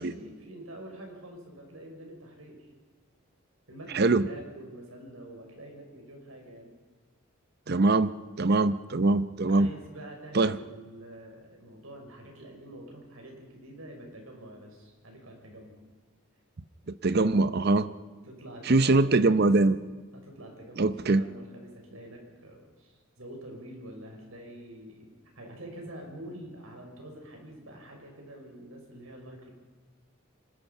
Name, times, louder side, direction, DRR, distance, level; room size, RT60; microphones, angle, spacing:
voice 1, 0.0-2.6 3.7-6.7 9.5-15.8 18.2-19.5 20.1-25.1 25.3-29.5, right 1 dB, 85° right, 2 dB, 6.0 m, -46 dB
voice 2, 7.7-8.1 8.4-9.7 10.3-10.6 17.0-17.9 18.7-19.7 20.8-21.2, right 3 dB, 50° right, 14 dB, 0.7 m, -22 dB
25.0 x 20.5 x 5.5 m, 1.4 s
head